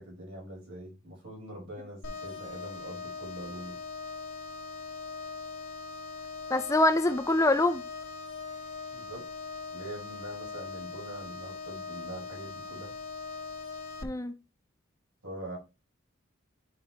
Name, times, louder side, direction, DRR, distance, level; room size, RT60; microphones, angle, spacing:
voice 1, 0.0-3.8 8.9-9.2 9.7-12.9 15.2-15.6, right 1 dB, 75° right, 4.6 m, -43 dB
sound 1, 2.0-14.0, left 4 dB, 85° left, 1.4 m, -41 dB
voice 2, 6.5-7.8 14.0-14.3, left 2 dB, 15° left, 0.5 m, -24 dB
10.0 x 5.3 x 2.9 m
head